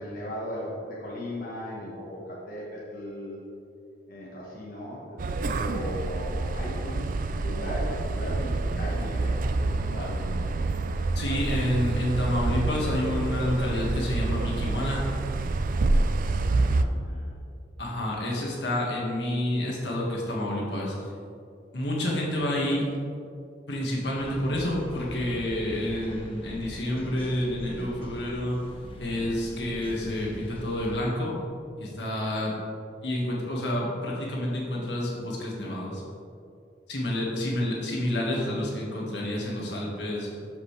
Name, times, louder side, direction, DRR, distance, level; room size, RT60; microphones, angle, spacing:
voice 1, 0.0-3.4 4.1-5.2 5.5-10.5 15.9-17.3, equal, 55° left, -6 dB, 1.4 m, -37 dB
sound 1, 5.2-16.8, right 2 dB, 50° right, 0.4 m, -27 dB
voice 2, 11.1-15.0 17.8-20.9 21.7-22.9 23.7-28.6 29.0-31.4 31.8-32.5 33.0-36.0 36.9-40.3, left 1 dB, 75° left, -3 dB, 1.9 m, -29 dB
sound 2, 24.2-31.0, equal, 30° left, 1.0 m, -42 dB
12.0 x 5.4 x 3.4 m, 2.4 s
head